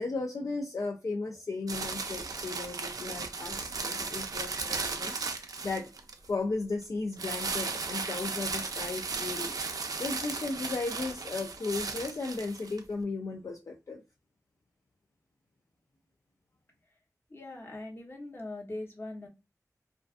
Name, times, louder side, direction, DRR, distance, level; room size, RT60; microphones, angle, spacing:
voice 1, 0.0-5.9 6.3-9.5 9.9-14.0, left 3 dB, 60° left, 0.4 m, -35 dB
sound 1, 1.7-6.3 7.2-12.8, right 4 dB, 85° right, 0.4 m, -36 dB
voice 2, 17.3-19.3, left 2 dB, 40° left, 0.9 m, -41 dB
2.4 x 2.3 x 2.4 m
wide cardioid pair, 60°, 6 cm